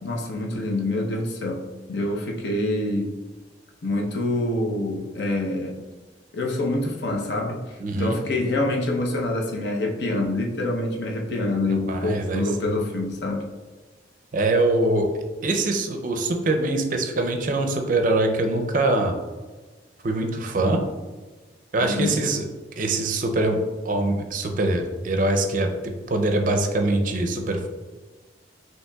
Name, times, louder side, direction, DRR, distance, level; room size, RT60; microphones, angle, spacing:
voice 1, 0.0-3.2 3.8-5.8 6.3-13.5 21.8-22.2, left 2 dB, 65° left, 0 dB, 0.7 m, -26 dB
voice 2, 7.8-8.2 11.9-12.8 14.3-15.1 15.4-19.1 20.0-20.8 21.7-22.4 22.8-23.6 23.8-27.7, right 2 dB, 45° right, 4 dB, 0.5 m, -23 dB
5.6 x 3.0 x 2.3 m, 1.3 s
head